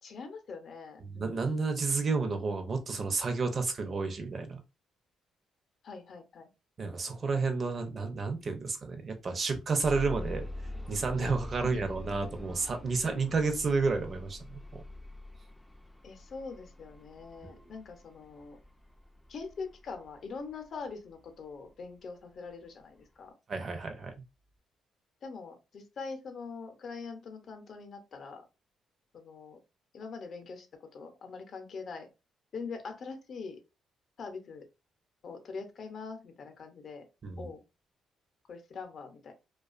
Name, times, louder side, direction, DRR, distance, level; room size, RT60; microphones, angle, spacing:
voice 1, 0.0-1.5 5.8-6.5 11.6-12.5 12.9-13.0 16.0-18.6 19.3-23.3 25.2-28.4 29.1-29.6 29.9-32.1 32.5-33.6 34.2-34.7 35.2-37.0 37.4-37.6 38.5-39.3, left 4 dB, 55° left, 0.6 m, -43 dB
voice 2, 1.0-4.6 6.8-10.5 10.9-14.8 17.4-17.6 23.5-24.1 37.2-37.5, right 4 dB, 45° right, 0.6 m, -31 dB
sound 1, 9.8-21.7 22.5-22.6 23.0-23.1, left 1 dB, 5° left, 0.4 m, -44 dB
2.4 x 2.2 x 2.4 m
cardioid pair, 90°, 0 cm